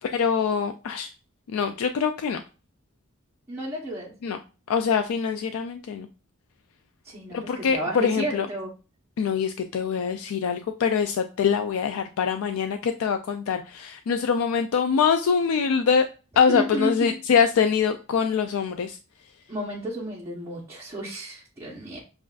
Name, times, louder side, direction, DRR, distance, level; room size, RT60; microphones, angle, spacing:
voice 1, 0.0-1.1 1.5-2.4 4.2-4.4 4.7-6.1 7.3-8.5 9.2-16.1 16.4-19.0, left 6 dB, 85° left, 7 dB, 0.3 m, -24 dB
voice 2, 3.5-4.1 7.0-8.7 16.5-17.2 19.5-22.0, right 1 dB, 15° right, -6 dB, 1.0 m, -32 dB
7.3 x 2.5 x 2.4 m, 0.33 s
head